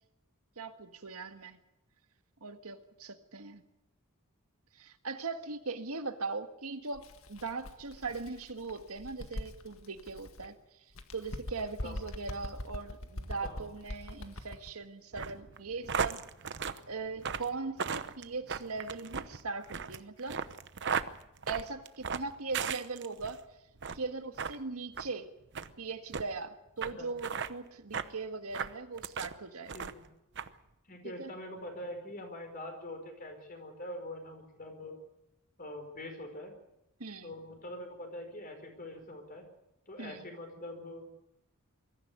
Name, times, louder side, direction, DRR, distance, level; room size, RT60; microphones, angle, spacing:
voice 1, 0.6-1.6 2.4-3.6 4.8-10.5 11.1-16.2 16.9-20.4 21.5-23.4 23.9-25.3 25.8-29.9 31.0-31.3 37.0-37.3 40.0-40.3, right 4 dB, 85° right, 7 dB, 1.8 m, -40 dB
Bird, 6.9-10.5 10.9-14.7, left 1 dB, 65° left, 1.8 m, -43 dB
sound 1, 15.1-23.4 23.8-24.1 24.4-24.6 24.9-25.1 25.5-25.7 26.1-26.2 26.8-26.9 27.2-27.5 27.9-28.1 28.5-29.3 29.7-30.1 30.4-30.5, right 6 dB, 55° right, 0.9 m, -36 dB
voice 2, 29.7-30.1 30.9-34.9 35.6-36.5 37.2-39.4 39.9-41.1, left 1 dB, 40° left, 4 dB, 4.9 m, -44 dB
22.5 x 14.0 x 9.5 m, 0.88 s
head